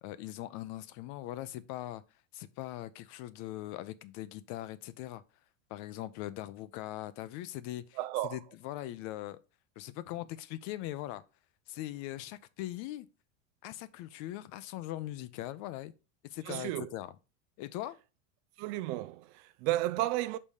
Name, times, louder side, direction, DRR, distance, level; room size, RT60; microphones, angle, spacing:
voice 1, 0.0-2.0 2.3-5.2 5.7-8.0 8.2-9.4 9.8-11.2 11.7-13.1 13.6-15.9 16.2-17.1 17.6-17.9, left 14 dB, 50° left, 0.7 m, -40 dB
voice 2, 8.0-8.4 16.4-16.9 18.6-20.4, right 15 dB, 45° right, 0.4 m, -33 dB
5.5 x 4.1 x 4.9 m
hypercardioid pair, 100°, 38 cm